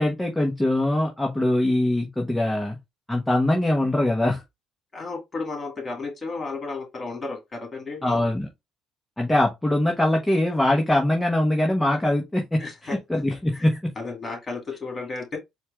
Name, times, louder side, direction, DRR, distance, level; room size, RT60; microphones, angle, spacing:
voice 1, 0.0-2.8 3.1-4.4 8.0-8.5 9.2-13.9, left 1 dB, 10° left, 1.0 m, -22 dB
voice 2, 4.9-8.2 12.6-13.0 13.5-13.7 14.0-15.4, left 3 dB, 30° left, 2.3 m, -33 dB
4.4 x 2.3 x 3.5 m
cardioid pair, 95°, 0 cm